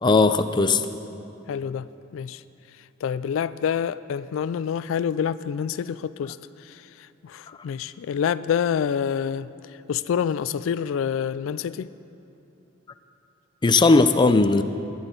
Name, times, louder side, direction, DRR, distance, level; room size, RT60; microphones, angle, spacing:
voice 1, 0.0-0.9 13.6-14.6, left 3 dB, 25° left, 9 dB, 0.4 m, -17 dB
voice 2, 1.5-2.4 3.0-9.5 9.9-11.9, left 8 dB, 90° left, 15 dB, 0.3 m, -27 dB
21.0 x 9.7 x 3.9 m, 2.9 s
head